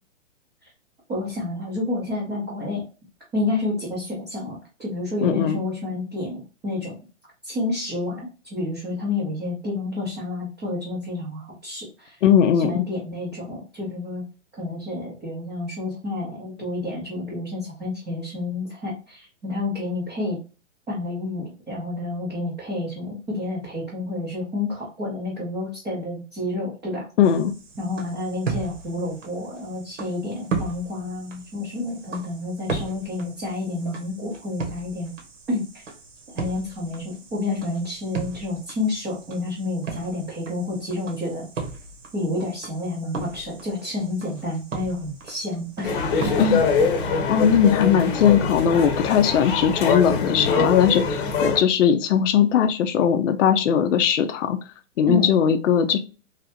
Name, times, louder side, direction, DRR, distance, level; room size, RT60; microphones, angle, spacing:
voice 1, 1.1-2.8 3.3-7.0 7.4-12.1 12.6-14.2 14.6-20.4 20.9-27.1 27.8-35.1 35.5-35.8 36.3-41.5 42.1-46.0 55.1-55.3, left 2 dB, 10° right, -7 dB, 0.5 m, -29 dB
voice 2, 5.2-5.6 12.2-12.8 27.2-27.5 46.4-46.6 47.3-54.6 55.0-56.0, left 8 dB, 75° left, 7 dB, 0.5 m, -19 dB
sound 1, 27.2-47.1, right 4 dB, 75° right, 1.2 m, -36 dB
sound 2, 45.8-51.6, left 5 dB, 45° left, 0.8 m, -23 dB
3.2 x 2.6 x 2.7 m, 0.33 s
hypercardioid pair, 155°, 38 cm